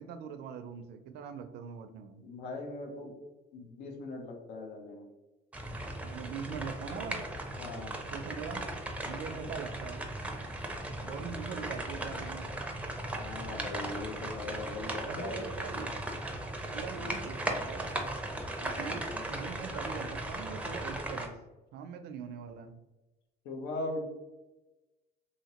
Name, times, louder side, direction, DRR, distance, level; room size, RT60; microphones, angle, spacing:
voice 1, 0.0-2.2 6.0-7.2 8.1-8.7 9.1-10.1 11.0-12.5 15.0-15.9 16.7-18.1 18.6-21.4 21.7-22.8, right 6 dB, 75° right, 9 dB, 0.4 m, -42 dB
voice 2, 2.2-3.1 3.5-5.1 7.6-8.0 13.2-15.5 15.7-15.9 16.9-17.3 18.8-19.2 23.4-24.1, left 2 dB, 90° left, 2 dB, 0.7 m, -40 dB
sound 1, 5.5-21.3, right 1 dB, 10° right, 0.4 m, -37 dB
2.8 x 2.8 x 2.8 m, 1.1 s
cardioid pair, 110°, 17 cm